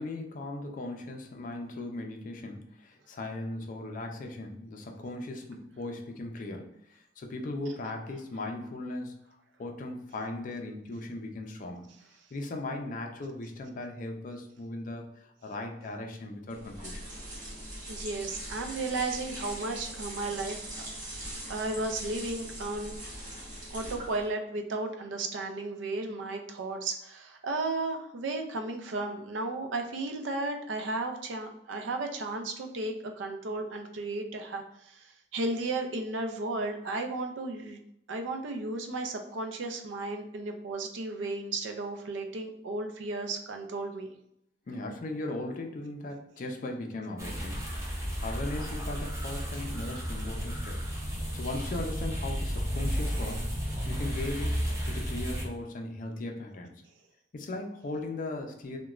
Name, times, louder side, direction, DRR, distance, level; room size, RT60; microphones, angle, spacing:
voice 1, 0.0-9.1 9.6-11.9 12.3-17.1 44.7-53.5 53.9-54.6 54.9-56.7 57.3-58.8, left 2 dB, 45° left, 3 dB, 0.4 m, -38 dB
sound 1, 16.5-24.3, right 1 dB, 45° right, 0.9 m, -41 dB
voice 2, 17.9-20.7 21.0-23.0 23.7-37.8 38.1-44.1, right 2 dB, 80° right, 4 dB, 0.4 m, -34 dB
sound 2, 47.2-55.4, equal, 15° right, 0.6 m, -33 dB
2.9 x 2.2 x 2.3 m, 0.78 s
head